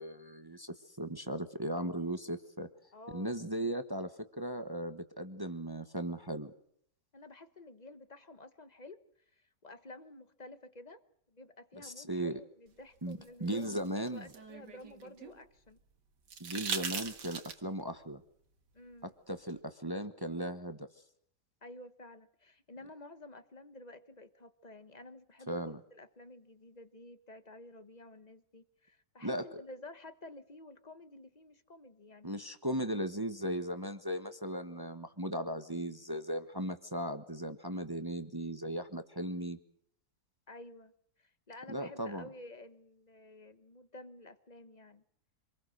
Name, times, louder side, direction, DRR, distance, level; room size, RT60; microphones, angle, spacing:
voice 1, 0.0-2.7 3.1-4.1 4.4-6.5 11.8-12.4 13.0-14.3 16.4-18.2 19.0-20.9 25.5-25.8 29.2-29.4 32.2-39.6 41.7-42.3, right 1 dB, 15° right, 9 dB, 1.0 m, -37 dB
voice 2, 2.9-3.4 7.1-9.0 9.3-11.0 11.3-15.8 18.7-19.1 21.6-32.4 40.5-40.9 41.2-45.0, left 2 dB, 25° left, 12 dB, 1.2 m, -52 dB
sound 1, 13.1-15.4 16.3-17.8 19.5-19.6, right 5 dB, 90° right, 2.4 m, -40 dB
26.0 x 20.0 x 6.5 m, 0.68 s
omnidirectional pair, 1.8 m